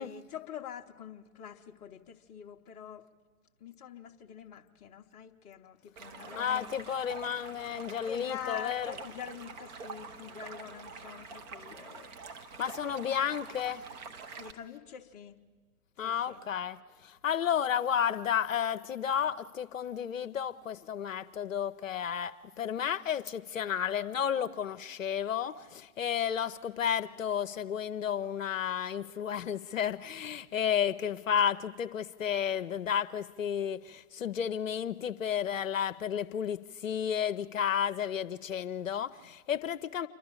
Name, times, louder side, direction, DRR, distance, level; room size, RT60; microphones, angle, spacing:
voice 1, 0.0-3.1 3.6-7.0 8.1-12.4 12.8-13.2 14.3-15.4 16.0-16.5, left 9 dB, 15° left, 2 dB, 0.9 m, -45 dB
Stream, 6.0-14.5, right 4 dB, 30° right, 1.3 m, -46 dB
voice 2, 6.4-8.9 12.6-13.8 16.0-40.1, left 8 dB, 60° left, 10 dB, 0.7 m, -32 dB
28.0 x 12.0 x 8.9 m, 1.4 s
figure-of-eight pair, 125°, 44 cm